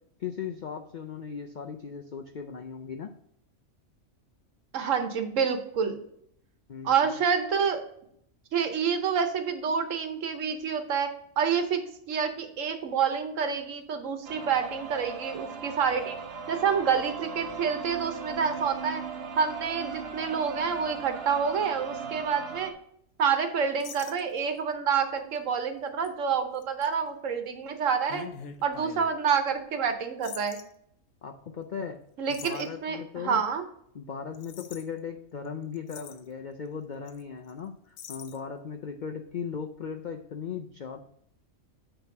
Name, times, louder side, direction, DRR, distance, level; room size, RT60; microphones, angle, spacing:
voice 1, 0.2-3.1 6.7-7.0 31.2-32.0 32.3-33.4 33.9-41.0, left 6 dB, 65° left, 4 dB, 0.4 m, -37 dB
voice 2, 4.7-6.0 6.8-7.8 8.5-11.1 11.4-11.8 12.1-16.2 16.5-19.0 19.4-22.7 23.2-28.2 28.6-30.6 32.2-33.6, right 6 dB, 70° right, 7 dB, 1.2 m, -28 dB
sound 1, 14.2-22.7, right 5 dB, 55° right, 0.9 m, -38 dB
sound 2, 23.8-24.6 25.2-25.4 26.0-26.1 26.6-26.9 28.1-29.1 30.2-30.6 32.3-32.7 34.3-34.8 35.4-35.5 35.7-36.3 37.1-37.2 37.5-37.6 38.0-38.4, left 8 dB, 90° left, 1.1 m, -44 dB
8.9 x 3.0 x 5.8 m, 0.70 s
omnidirectional pair, 1.4 m